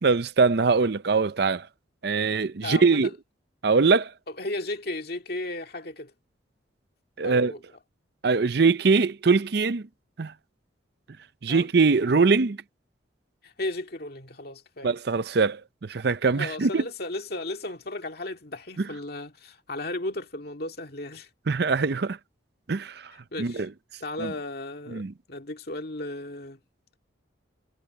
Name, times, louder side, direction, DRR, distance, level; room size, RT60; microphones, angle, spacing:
voice 1, 0.0-1.7 2.0-3.1 3.6-4.1 7.2-7.5 8.2-9.9 10.2-10.3 11.4-12.6 14.8-16.8 21.5-22.2 22.7-23.1 23.4-23.7 24.2-24.3 24.9-25.1, right 4 dB, 55° right, 0.6 m, -22 dB
voice 2, 2.6-3.1 4.4-6.1 7.2-7.6 11.5-11.7 13.4-14.9 16.3-21.3 23.3-23.7 24.0-26.6, left 2 dB, 55° left, 2.2 m, -35 dB
head